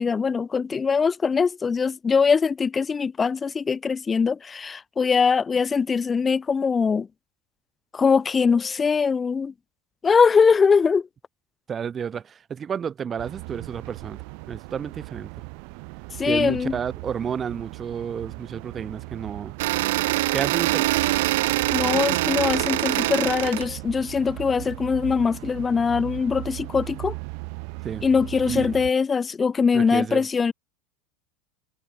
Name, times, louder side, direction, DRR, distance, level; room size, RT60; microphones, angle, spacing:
voice 1, 0.0-7.1 7.9-9.5 10.0-11.1 16.2-16.8 21.7-27.1 28.0-30.5, left 5 dB, 15° left, 0.5 m, -22 dB
voice 2, 11.7-14.2 14.5-15.3 16.3-19.5 20.3-20.9 27.8-28.0 28.5-28.7 29.7-30.3, right 7 dB, 20° right, 0.8 m, -31 dB
sound 1, 13.2-28.9, right 40 dB or more, 50° right, 1.5 m, -38 dB
sound 2, 19.6-23.7, right 18 dB, 80° right, 0.4 m, -23 dB
supercardioid pair, 180°, 0 cm